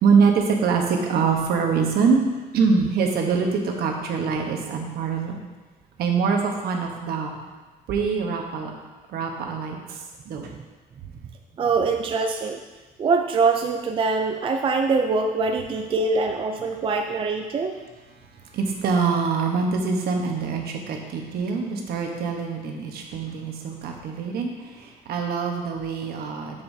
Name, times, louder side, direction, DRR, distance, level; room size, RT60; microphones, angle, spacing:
voice 1, 0.0-2.3 2.5-5.4 6.0-7.3 7.9-8.7 9.1-10.0 10.3-10.5 18.5-26.6, right 5 dB, 70° right, 2 dB, 1.1 m, -24 dB
voice 2, 11.6-12.6 13.0-17.7, right 4 dB, 30° right, 4 dB, 0.4 m, -23 dB
7.1 x 6.7 x 2.7 m, 1.2 s
cardioid pair, 110°, 17 cm